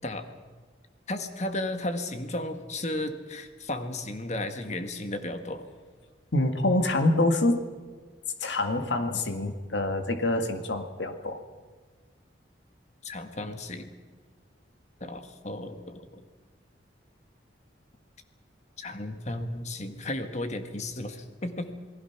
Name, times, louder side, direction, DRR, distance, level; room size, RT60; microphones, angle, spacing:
voice 1, 1.1-5.6 13.0-13.9 15.0-16.2 18.8-21.7, left 1 dB, 40° left, 7 dB, 1.6 m, -34 dB
voice 2, 6.3-7.6 8.4-11.4, left 2 dB, 80° left, 7 dB, 2.0 m, -26 dB
28.0 x 19.0 x 5.9 m, 1.5 s
head